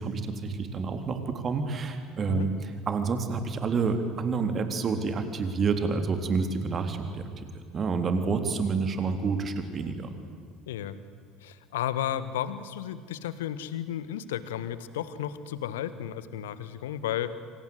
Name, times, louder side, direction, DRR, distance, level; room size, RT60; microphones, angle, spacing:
voice 1, 0.0-7.5 7.7-10.1, right 4 dB, 30° right, 7 dB, 3.6 m, -29 dB
voice 2, 10.7-11.0 11.4-17.3, left 10 dB, 65° left, 14 dB, 1.4 m, -33 dB
27.5 x 26.5 x 8.1 m, 2.2 s
figure-of-eight pair, 65°, 0 cm